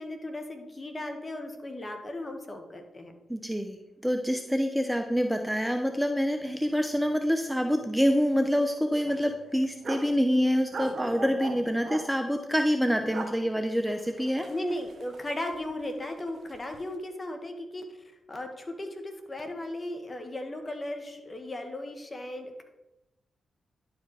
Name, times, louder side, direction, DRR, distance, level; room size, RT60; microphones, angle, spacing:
voice 1, 0.0-3.1 14.5-17.9 18.3-22.6, left 1 dB, 30° left, 4 dB, 1.7 m, -36 dB
voice 2, 3.3-3.8 4.0-14.5, equal, 5° right, 6 dB, 0.8 m, -26 dB
sound 1, 6.4-6.6 6.8-7.0 7.4-8.1 8.4-8.5 9.0-10.2 10.7-12.0 12.9-13.3 13.7-15.7 16.0-16.8, right 3 dB, 55° right, 1.1 m, -40 dB
11.0 x 5.0 x 4.9 m, 0.96 s
supercardioid pair, 45°, 0 cm